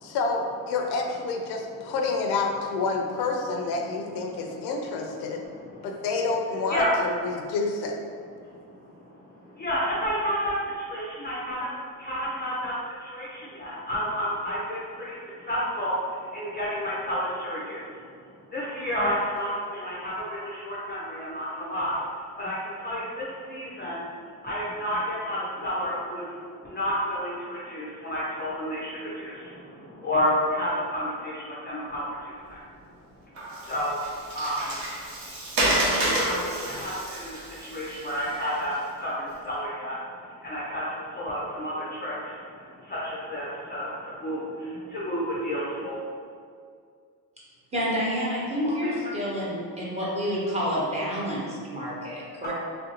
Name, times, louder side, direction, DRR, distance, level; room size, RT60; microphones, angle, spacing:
voice 1, 0.0-5.4 5.8-8.0, left 3 dB, 80° left, 2 dB, 0.5 m, -28 dB
voice 2, 4.2-4.7 5.2-6.1 6.7-7.0 8.4-11.7 12.0-18.1 18.4-26.4 26.6-32.6 33.6-34.0 34.3-34.8 36.0-46.0 48.6-49.1 52.4-52.5, equal, 25° left, -6 dB, 0.4 m, -31 dB
Water, 33.3-38.7, right 1 dB, 65° right, 0.9 m, -29 dB
voice 3, 47.7-52.5, equal, 15° right, -7 dB, 0.7 m, -29 dB
3.1 x 2.5 x 2.8 m, 2.2 s
cardioid pair, 140°, 38 cm